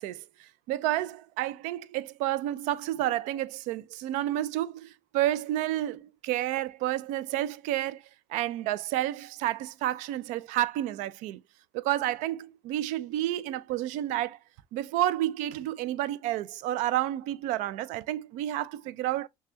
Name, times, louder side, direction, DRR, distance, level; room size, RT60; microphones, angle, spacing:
voice 1, 0.0-8.0 8.3-11.4 11.7-14.4 14.7-19.3, right 13 dB, 65° right, 0.5 m, -30 dB
6.5 x 2.3 x 2.6 m
hypercardioid pair, 65°, 14 cm